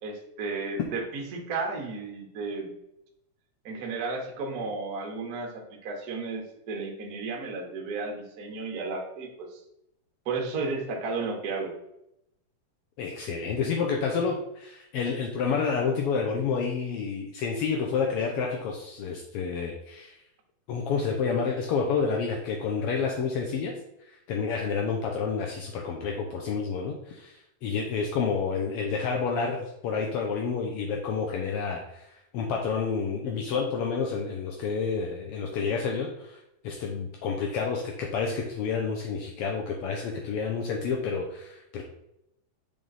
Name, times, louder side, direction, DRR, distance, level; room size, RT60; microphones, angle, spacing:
voice 1, 0.0-2.7 3.6-9.5 10.2-11.7, right 3 dB, 70° right, 0 dB, 0.8 m, -33 dB
voice 2, 13.0-20.2 20.7-23.7 24.1-32.1 32.3-41.8, left 5 dB, 80° left, 0 dB, 1.3 m, -29 dB
7.0 x 3.4 x 4.0 m, 0.82 s
omnidirectional pair, 3.4 m